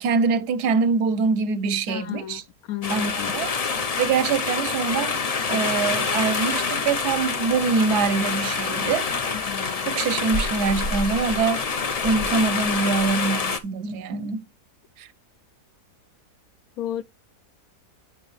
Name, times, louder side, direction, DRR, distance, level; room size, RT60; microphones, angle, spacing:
voice 1, 0.0-2.4 2.9-3.5 4.0-5.2 5.5-9.1 9.8-11.7 12.0-14.4 15.0-15.1, right 5 dB, 80° right, 1.3 m, -24 dB
voice 2, 1.9-2.4 2.7-3.4 9.5-10.0 16.8-17.0, left 12 dB, 70° left, 1.0 m, -32 dB
sound 1, 2.8-13.6, left 5 dB, 50° left, 0.4 m, -26 dB
8.7 x 5.2 x 3.1 m
omnidirectional pair, 1.7 m